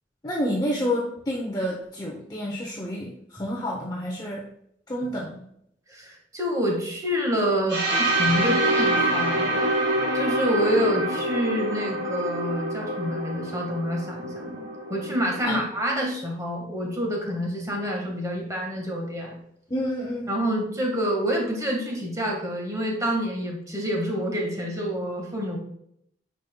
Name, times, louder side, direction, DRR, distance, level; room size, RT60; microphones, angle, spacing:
voice 1, 0.2-4.5 4.9-5.4 15.4-15.6 19.7-20.4, equal, 20° left, -2 dB, 0.8 m, -29 dB
voice 2, 5.9-9.6 10.1-19.3 20.3-25.6, equal, 20° right, -1 dB, 1.5 m, -27 dB
sound 1, 7.7-15.5, right 1 dB, 70° right, 2.6 m, -26 dB
9.2 x 5.4 x 2.2 m, 0.73 s
head